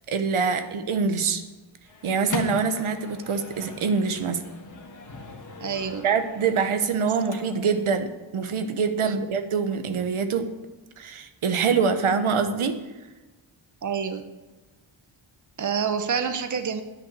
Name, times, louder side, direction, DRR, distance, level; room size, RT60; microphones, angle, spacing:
voice 1, 0.1-1.4 2.0-4.4 6.0-10.4 11.0-12.7, right 5 dB, 85° right, 9 dB, 1.0 m, -25 dB
Microwave oven, 1.9-7.9, left 4 dB, 40° left, 1.5 m, -40 dB
voice 2, 5.6-6.1 9.0-9.2 13.8-14.3 15.6-16.8, right 6 dB, 40° right, 9 dB, 0.8 m, -28 dB
9.8 x 5.8 x 8.1 m, 1.2 s
wide cardioid pair, 125°, 48 cm